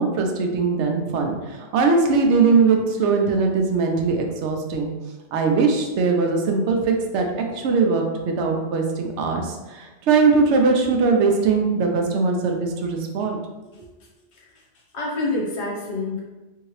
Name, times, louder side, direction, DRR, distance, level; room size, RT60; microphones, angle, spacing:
voice 1, 0.0-4.9 5.3-13.4, right 4 dB, 75° right, 2 dB, 0.9 m, -21 dB
voice 2, 14.3-14.6 14.9-16.2, left 2 dB, 70° left, -3 dB, 1.0 m, -27 dB
2.8 x 2.7 x 3.0 m, 1.2 s
omnidirectional pair, 1.2 m